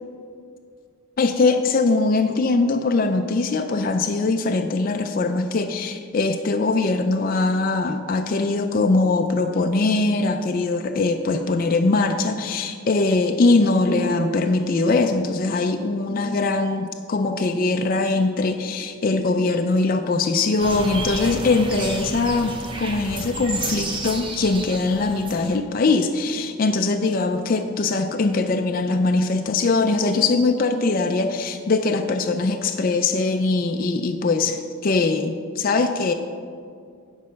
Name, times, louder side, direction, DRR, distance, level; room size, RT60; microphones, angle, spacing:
voice 1, 1.2-36.1, left 3 dB, 40° left, 6 dB, 0.3 m, -21 dB
sound 1, 20.6-25.6, right 2 dB, 20° right, 0.8 m, -31 dB
9.5 x 5.5 x 5.1 m, 2.2 s
head